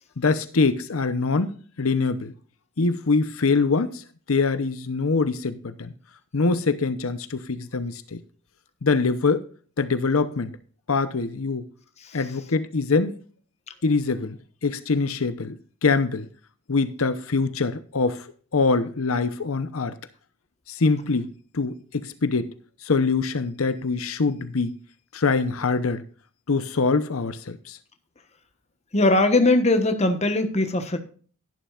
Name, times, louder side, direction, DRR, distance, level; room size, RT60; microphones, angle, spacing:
voice 1, 0.2-2.3 2.8-5.9 6.3-8.2 8.8-9.5 9.8-10.5 10.9-11.7 12.1-13.2 13.8-14.4 14.6-15.6 15.8-16.3 16.7-18.2 18.5-20.0 20.7-22.5 22.8-24.8 25.1-26.0 26.5-27.8, left 4 dB, 90° left, 0.8 m, -24 dB
voice 2, 28.9-31.0, left 2 dB, 30° left, 1.2 m, -20 dB
12.5 x 11.5 x 2.4 m
head